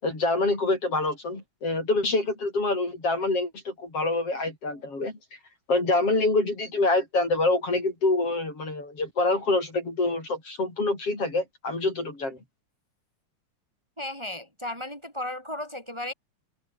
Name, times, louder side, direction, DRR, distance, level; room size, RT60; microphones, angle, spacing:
voice 1, 0.0-5.2 5.7-12.4, left 2 dB, 50° left, 7.6 m, -26 dB
voice 2, 14.0-16.1, left 1 dB, 10° right, 6.3 m, -35 dB
omnidirectional pair, 3.5 m